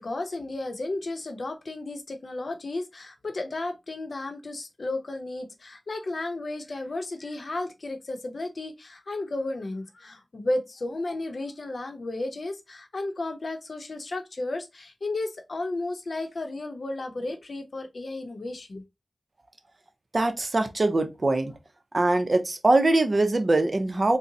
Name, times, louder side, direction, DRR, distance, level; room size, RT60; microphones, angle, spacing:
voice 1, 0.0-18.8, left 2 dB, 75° left, 0.6 m, -33 dB
voice 2, 20.1-21.5 21.9-24.2, right 2 dB, 55° right, 0.6 m, -22 dB
3.7 x 2.0 x 2.7 m
wide cardioid pair, 60°, 0 cm